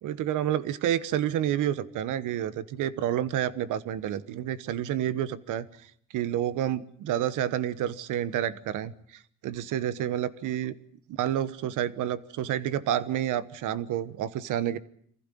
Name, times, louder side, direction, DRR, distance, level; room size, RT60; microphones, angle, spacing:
voice 1, 0.0-10.8 11.2-14.8, right 11 dB, 85° right, 15 dB, 1.2 m, -29 dB
24.5 x 15.5 x 10.0 m, 0.65 s
cardioid pair, 90°, 30 cm